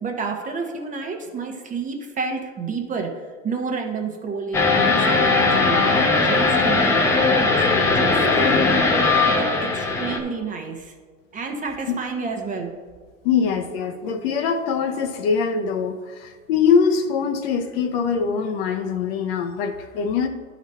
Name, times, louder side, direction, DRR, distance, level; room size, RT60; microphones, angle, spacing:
voice 1, 0.0-3.1 3.4-7.6 7.8-8.8 9.3-10.9 11.3-12.7, right 5 dB, 20° right, 3 dB, 0.9 m, -30 dB
sound 1, 4.5-10.2, left 3 dB, 5° left, 0.3 m, -19 dB
voice 2, 13.2-20.3, left 6 dB, 45° left, 6 dB, 0.8 m, -23 dB
11.0 x 4.1 x 4.2 m, 1.5 s
hypercardioid pair, 125°, 40 cm